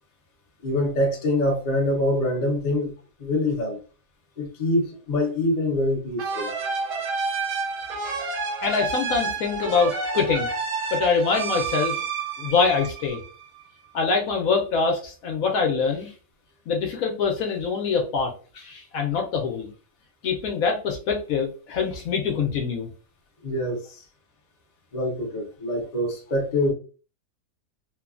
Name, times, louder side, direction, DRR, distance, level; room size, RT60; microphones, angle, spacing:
voice 1, 0.6-2.9 3.2-3.8 4.4-6.5 23.4-24.0 24.9-26.7, left 1 dB, 50° left, 0 dB, 0.5 m, -25 dB
sound 1, 6.2-13.6, right 4 dB, 85° right, 1.2 m, -29 dB
voice 2, 8.6-10.5 10.9-12.0 12.4-13.2 13.9-16.1 16.7-19.7 20.2-22.9, left 5 dB, 65° left, 1 dB, 0.9 m, -24 dB
3.1 x 2.2 x 2.4 m, 0.37 s
omnidirectional pair, 1.8 m